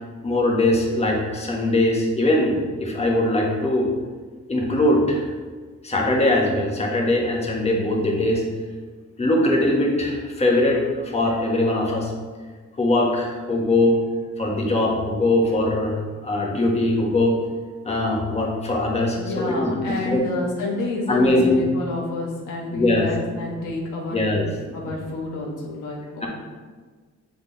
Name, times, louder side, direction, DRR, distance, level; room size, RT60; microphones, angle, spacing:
voice 1, 0.2-3.9 4.5-5.3 5.8-8.4 9.2-12.1 12.8-14.0 14.4-16.0 16.2-17.4 17.8-20.2 21.1-21.6 22.7-23.1 24.1-24.4 26.2-26.3, left 1 dB, 20° left, -2 dB, 1.3 m, -21 dB
voice 2, 19.2-24.2 24.7-26.3, left 2 dB, 85° left, -2 dB, 1.3 m, -29 dB
6.8 x 4.0 x 3.9 m, 1.4 s
cardioid pair, 90°, 30 cm